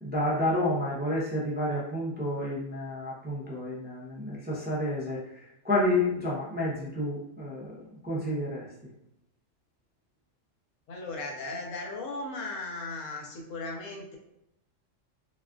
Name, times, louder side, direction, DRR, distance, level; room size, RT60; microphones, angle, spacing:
voice 1, 0.0-8.7, left 1 dB, 15° right, -6 dB, 0.4 m, -30 dB
voice 2, 10.9-14.2, left 2 dB, 80° left, 0 dB, 1.2 m, -37 dB
4.0 x 2.4 x 2.3 m, 0.81 s
omnidirectional pair, 1.3 m